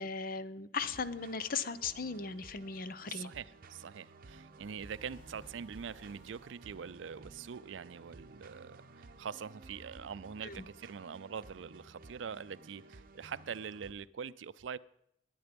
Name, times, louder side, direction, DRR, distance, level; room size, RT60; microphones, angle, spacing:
voice 1, 0.0-3.3 10.4-10.6, left 5 dB, 50° left, 0.7 m, -37 dB
sound 1, 0.8-13.9, right 3 dB, 50° right, 0.8 m, -55 dB
voice 2, 3.1-14.8, right 7 dB, 75° right, 0.4 m, -44 dB
sound 2, 4.5-6.9, right 1 dB, 75° left, 2.2 m, -60 dB
20.0 x 9.5 x 5.2 m
head